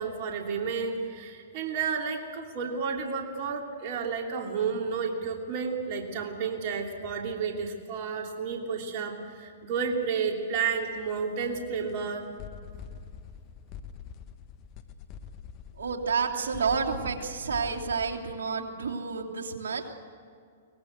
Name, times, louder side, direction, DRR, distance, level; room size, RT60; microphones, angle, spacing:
voice 1, 0.0-12.3, right 5 dB, 50° right, 2 dB, 2.9 m, -31 dB
sound 1, 10.7-11.0 11.4-11.5 11.9-12.0 12.4-18.2, left 7 dB, 35° left, 1.3 m, -45 dB
voice 2, 15.8-19.8, right 5 dB, 75° right, 0 dB, 3.0 m, -30 dB
24.0 x 18.5 x 8.1 m, 2.2 s
hypercardioid pair, 130°, 0 cm